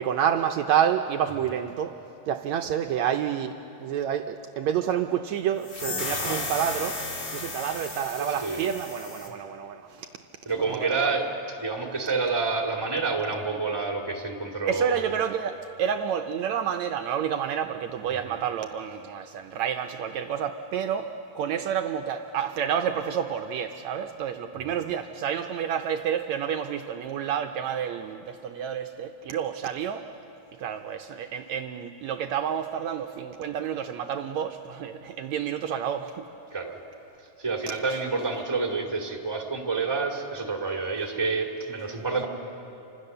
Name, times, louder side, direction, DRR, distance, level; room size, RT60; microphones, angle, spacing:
voice 1, 0.0-1.9 2.3-7.0 7.3-10.1 10.6-11.2 14.7-30.0 30.6-36.2, right 9 dB, 80° right, 5 dB, 1.6 m, -29 dB
sound 1, 5.6-9.3, left 2 dB, 35° left, 3.1 m, -34 dB
voice 2, 6.1-6.4 8.2-8.6 10.5-11.3 11.6-15.2 18.1-18.4 24.6-24.7 36.5-36.8 37.4-42.3, right 4 dB, 10° right, 1 dB, 1.8 m, -29 dB
29.5 x 25.5 x 6.7 m, 3.0 s
omnidirectional pair, 3.9 m